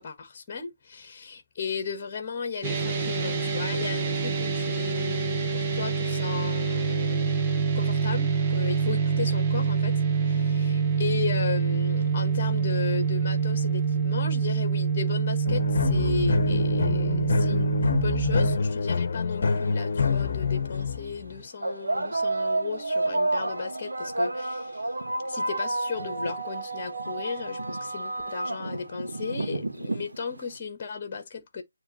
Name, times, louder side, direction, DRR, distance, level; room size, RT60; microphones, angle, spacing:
voice 1, 0.0-7.3 7.7-24.9 25.3-31.6, left 5 dB, 20° left, 1.5 m, -35 dB
sound 1, 2.6-18.6, right 6 dB, 20° right, 0.8 m, -26 dB
sound 2, 15.4-21.4, left 4 dB, 40° left, 1.1 m, -26 dB
sound 3, 19.5-19.6 20.6-20.7 21.6-30.5, right 2 dB, 75° right, 1.7 m, -30 dB
9.6 x 3.2 x 3.1 m
figure-of-eight pair, 170°, 0 cm